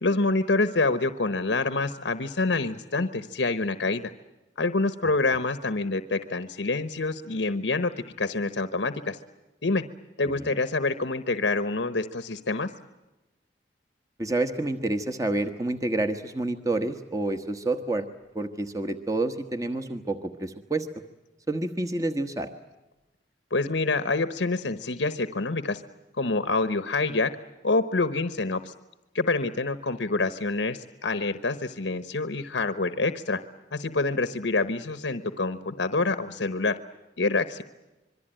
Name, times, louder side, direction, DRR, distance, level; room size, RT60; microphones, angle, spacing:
voice 1, 0.0-4.0 4.6-7.9 8.2-9.2 9.6-9.8 10.2-12.7 23.5-25.8 26.2-27.3 27.6-28.7 29.1-33.4 33.7-36.7 37.2-37.6, left 3 dB, 85° left, 11 dB, 1.1 m, -26 dB
voice 2, 14.2-18.1 18.3-20.9 21.5-22.5, right 2 dB, 20° right, 7 dB, 1.2 m, -28 dB
26.5 x 23.0 x 9.0 m, 1.0 s
head